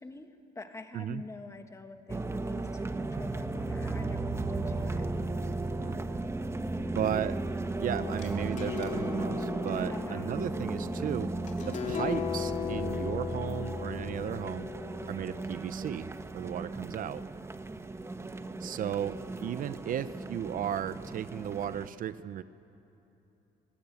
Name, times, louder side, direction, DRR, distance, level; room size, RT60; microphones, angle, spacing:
voice 1, 0.0-5.1 9.8-10.4, left 3 dB, 15° left, 6 dB, 1.7 m, -46 dB
sound 1, 2.1-21.9, right 2 dB, 15° right, 1.0 m, -35 dB
voice 2, 5.8-6.2 6.9-7.4 7.8-11.3 11.7-14.7 15.1-16.1 16.3-17.3 18.6-22.4, right 10 dB, 55° right, 14 dB, 0.7 m, -35 dB
sound 2, 7.9-15.7, left 8 dB, 45° left, 3.0 m, -38 dB
27.0 x 18.0 x 8.3 m, 3.0 s
cardioid pair, 110°, 17 cm